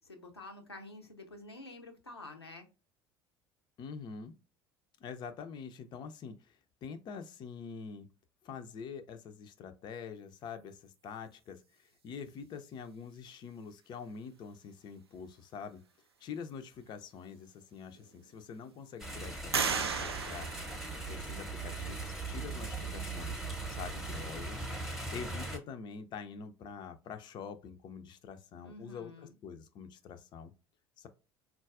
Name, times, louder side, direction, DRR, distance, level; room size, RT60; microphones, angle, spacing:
voice 1, 0.0-2.7 28.6-29.3, left 2 dB, 85° left, 0.5 m, -49 dB
voice 2, 3.8-4.3 5.0-8.1 8.4-15.8 16.2-20.5 21.1-23.4 23.7-30.5 31.0-31.1, left 6 dB, 35° left, 0.5 m, -45 dB
sound 1, 17.3-17.4 17.9-18.6 19.5-21.5, right 5 dB, 80° right, 0.4 m, -35 dB
sound 2, 19.0-25.6, right 3 dB, ahead, 0.9 m, -39 dB
3.8 x 2.3 x 2.4 m
figure-of-eight pair, 65°, 13 cm